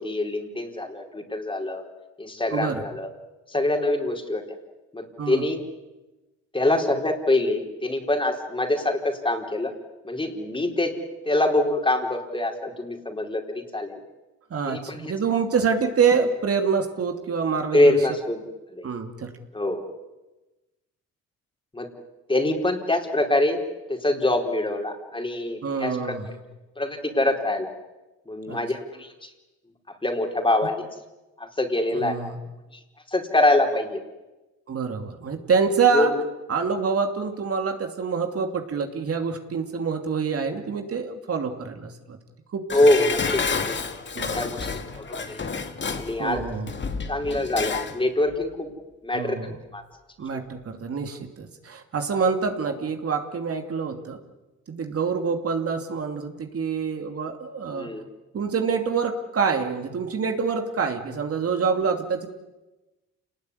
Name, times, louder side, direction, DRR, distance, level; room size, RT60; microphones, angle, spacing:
voice 1, 0.0-1.8 2.2-3.1 3.5-4.4 4.9-5.6 6.5-9.7 10.0-10.9 11.2-14.0 14.7-15.1 17.7-18.4 18.7-18.9 19.5-19.9 21.7-21.9 22.3-23.6 23.9-26.0 26.8-27.7 28.3-29.3 29.9-30.8 31.4-32.1 33.1-34.0 35.9-36.2 42.7-43.8 44.3-45.5 46.0-46.4 47.1-48.7 49.0-49.3 49.7-49.8 50.3-50.4 57.7-58.0, left 1 dB, 15° left, 3 dB, 4.5 m, -24 dB
voice 2, 2.5-2.8 5.2-5.5 14.5-18.0 18.8-19.3 25.6-26.3 28.5-28.6 31.9-32.4 34.7-36.1 36.5-42.2 42.5-42.6 44.1-44.5 46.2-46.8 49.1-49.6 50.2-54.2 54.7-57.9 58.3-62.3, right 5 dB, 50° right, 5 dB, 2.9 m, -26 dB
Dishes pots and pans, 42.7-48.0 48.3-48.4, left 5 dB, 40° left, 2.4 m, -30 dB
27.5 x 19.5 x 9.9 m, 1.1 s
cardioid pair, 90°, 30 cm